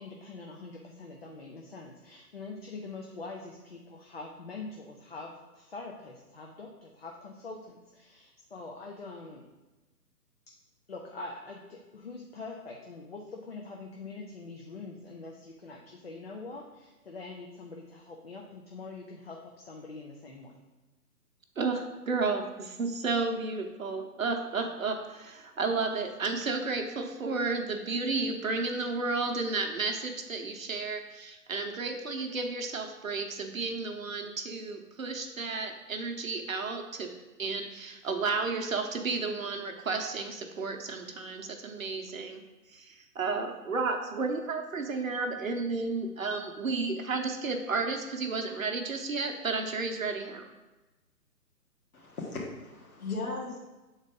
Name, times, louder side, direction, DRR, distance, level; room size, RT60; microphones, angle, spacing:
voice 1, 0.0-9.4 10.9-20.5, left 3 dB, 40° left, 0 dB, 0.6 m, -44 dB
voice 2, 21.6-37.1 37.4-42.4 42.7-50.5, right 4 dB, 55° right, 4 dB, 0.9 m, -32 dB
voice 3, 51.9-53.6, left 3 dB, 60° left, -3 dB, 1.9 m, -37 dB
7.2 x 4.0 x 3.8 m, 1.1 s
figure-of-eight pair, 140°, 49 cm